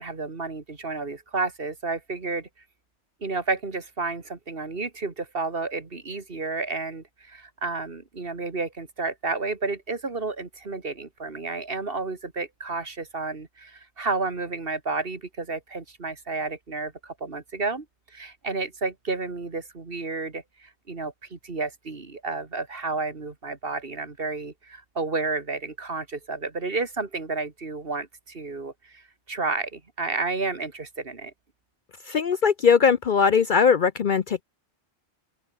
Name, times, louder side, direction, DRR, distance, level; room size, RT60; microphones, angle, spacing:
voice 1, 0.0-2.5 3.2-31.3, right 3 dB, 55° right, 2.3 m, -31 dB
voice 2, 32.1-34.4, left 6 dB, 50° left, 0.7 m, -20 dB
open air
omnidirectional pair, 1.2 m